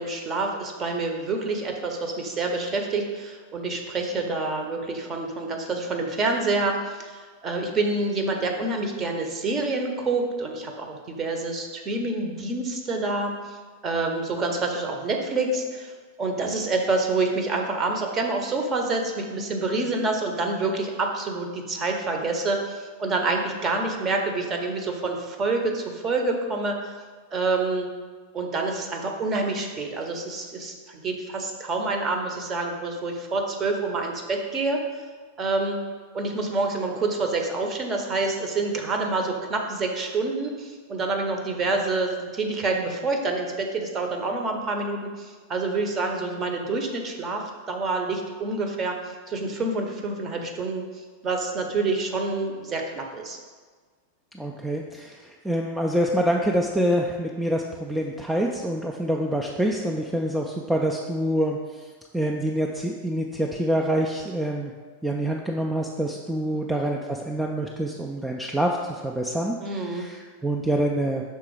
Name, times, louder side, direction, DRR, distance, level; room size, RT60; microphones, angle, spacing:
voice 1, 0.0-13.6 13.8-27.0 27.3-27.9 28.3-35.0 35.4-35.8 36.1-53.4 69.6-70.1, right 3 dB, 25° right, 3 dB, 0.8 m, -27 dB
voice 2, 54.3-61.9 62.1-64.7 65.0-71.2, right 1 dB, 5° right, 0 dB, 0.4 m, -26 dB
5.8 x 3.7 x 4.7 m, 1.5 s
figure-of-eight pair, 90°, 0 cm